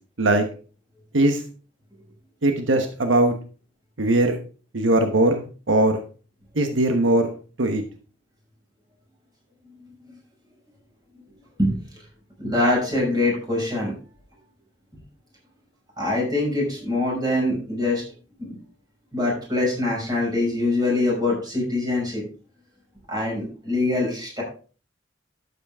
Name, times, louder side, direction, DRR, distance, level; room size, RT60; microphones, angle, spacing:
voice 1, 2.4-3.3 4.0-4.3 4.7-6.0 6.6-7.3 7.6-7.8, right 1 dB, 85° right, 5 dB, 1.2 m, -20 dB
voice 2, 12.4-13.9 16.0-18.0 18.4-18.6 19.1-22.2 23.1-24.4, left 2 dB, 20° right, -3 dB, 6.0 m, -23 dB
12.5 x 8.2 x 3.6 m, 0.38 s
head